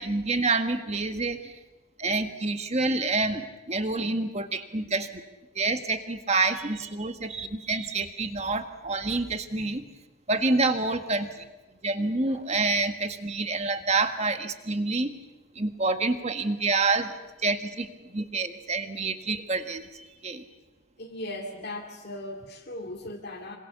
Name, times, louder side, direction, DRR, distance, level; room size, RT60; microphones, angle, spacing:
voice 1, 0.0-1.5 2.0-5.1 5.5-9.8 10.3-11.5 11.8-15.1 15.5-20.4, right 3 dB, 30° right, 7 dB, 1.6 m, -28 dB
voice 2, 21.0-23.6, left 1 dB, 50° left, -1 dB, 2.5 m, -38 dB
27.0 x 25.5 x 7.0 m, 1.1 s
head